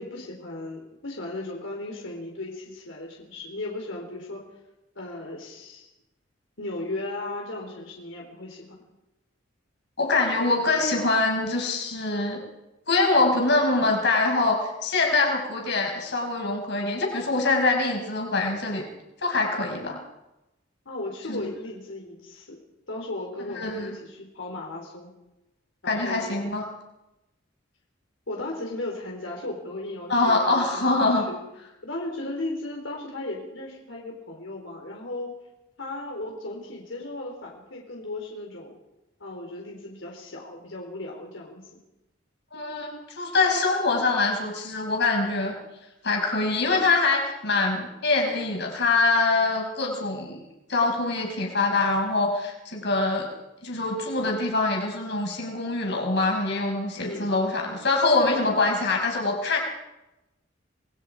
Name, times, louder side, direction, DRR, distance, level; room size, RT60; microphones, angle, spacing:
voice 1, 0.0-4.4 5.0-5.9 6.6-8.8 20.9-22.6 22.9-25.1 25.8-26.4 28.3-31.4 31.8-35.3 35.8-38.8 39.2-41.6 57.0-57.3, left 2 dB, 85° left, -1 dB, 4.2 m, -36 dB
voice 2, 10.0-12.4 12.9-18.8 19.2-20.0 21.3-21.5 23.6-23.9 25.9-26.6 30.1-31.2 42.5-45.5 46.0-50.4 50.7-53.3 53.6-59.6, left 3 dB, 60° left, 1 dB, 5.5 m, -24 dB
26.5 x 21.0 x 5.0 m, 0.96 s
head